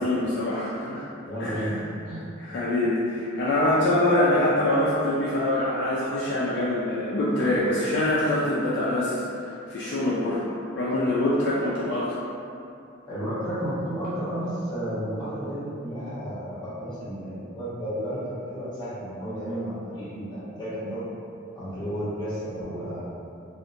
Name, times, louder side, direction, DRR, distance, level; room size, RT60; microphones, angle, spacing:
voice 1, 0.0-1.1 1.4-1.7 2.4-10.5 10.7-12.2, left 1 dB, 55° left, -8 dB, 0.3 m, -24 dB
voice 2, 1.2-2.2 13.1-21.0 21.5-23.0, equal, 20° left, -12 dB, 1.1 m, -32 dB
2.7 x 2.1 x 2.5 m, 2.6 s
head